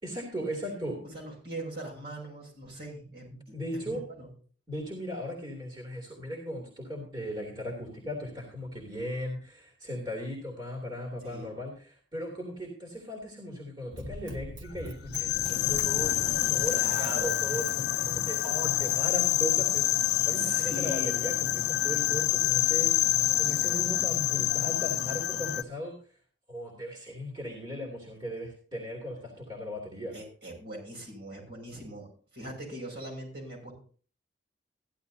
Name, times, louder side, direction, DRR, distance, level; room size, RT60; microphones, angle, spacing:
voice 1, 0.0-1.0 3.5-4.0 4.7-26.0 26.5-30.1, equal, 25° right, -2 dB, 2.8 m, -37 dB
voice 2, 1.1-3.4 3.7-4.3 11.2-11.5 16.7-17.4 20.3-21.2 30.1-33.7, right 1 dB, 60° right, -1 dB, 5.8 m, -41 dB
Run, 13.9-19.2 19.8-19.9, right 1 dB, 80° right, 1.8 m, -45 dB
sound 1, 15.1-25.6, left 13 dB, 60° left, 0.4 m, -27 dB
14.5 x 11.5 x 2.8 m, 0.43 s
head